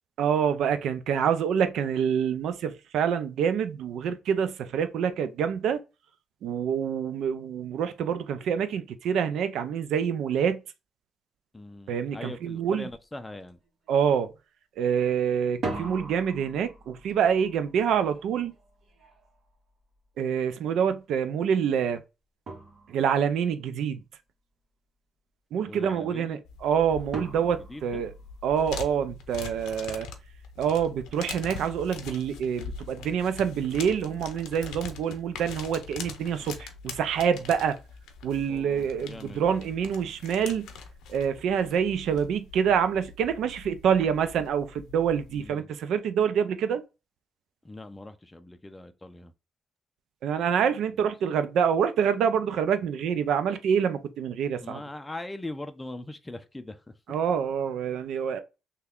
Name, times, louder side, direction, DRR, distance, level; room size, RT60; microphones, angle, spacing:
voice 1, 0.2-5.8 6.4-10.6 11.9-12.9 13.9-14.3 14.8-18.5 20.2-22.0 22.9-24.0 25.5-28.1 28.4-30.1 30.6-37.8 38.2-40.7 41.1-46.8 50.2-54.8 57.1-58.4, right 7 dB, 75° right, 0.4 m, -26 dB
voice 2, 11.5-13.6 25.7-26.4 27.5-28.1 38.5-39.6 45.3-45.7 47.6-49.3 54.6-56.9, left 2 dB, 15° left, 0.4 m, -41 dB
sound 1, 12.9-13.0 13.4-13.9 15.4-20.3 21.9-22.0 22.5-23.4 27.1-28.8, right 2 dB, 50° right, 1.1 m, -41 dB
sound 2, 26.5-45.5, left 5 dB, 85° left, 0.6 m, -43 dB
3.4 x 2.2 x 3.5 m
cardioid pair, 90°, 0 cm